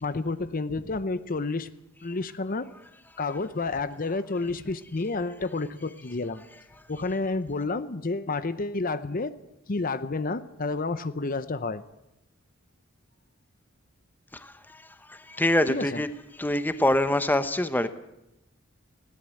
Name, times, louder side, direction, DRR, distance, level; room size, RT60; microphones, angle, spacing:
voice 1, 0.0-1.7 2.0-2.7 3.2-6.4 6.9-9.4 9.7-11.8 15.7-16.0, left 3 dB, 40° left, 13 dB, 0.8 m, -30 dB
voice 2, 14.3-16.1 16.3-17.9, left 1 dB, 10° left, 11 dB, 0.9 m, -26 dB
20.0 x 17.0 x 7.8 m, 0.89 s
head